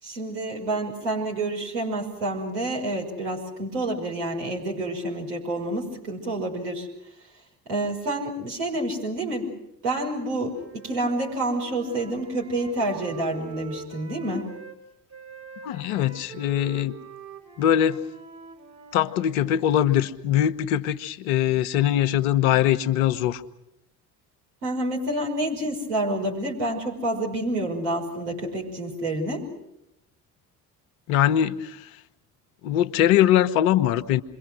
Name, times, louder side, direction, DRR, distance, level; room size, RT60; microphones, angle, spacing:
voice 1, 0.0-6.9 7.7-9.6 9.8-14.5 24.6-29.4, right 1 dB, 70° right, -1 dB, 5.8 m, -28 dB
Wind instrument woodwind instrument, 10.4-14.8 15.1-19.9, right 4 dB, 35° right, 5.6 m, -45 dB
voice 2, 15.6-16.9 17.6-18.0 18.9-23.4 31.1-31.9 32.6-34.2, left 11 dB, 65° left, 12 dB, 1.1 m, -22 dB
27.5 x 23.0 x 6.3 m, 0.84 s
figure-of-eight pair, 55°, 47 cm